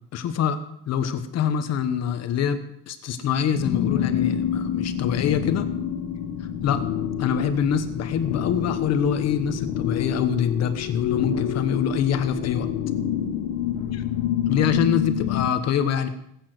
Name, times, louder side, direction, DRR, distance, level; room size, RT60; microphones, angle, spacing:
voice 1, 0.1-0.6 0.9-2.6 2.9-5.7 6.6-6.8 7.2-12.7 14.5-16.1, left 8 dB, 50° left, 9 dB, 1.2 m, -24 dB
sound 1, 3.5-15.5, left 9 dB, 65° left, 1.3 m, -27 dB
20.0 x 8.8 x 6.1 m, 0.73 s
cardioid pair, 170°, 34 cm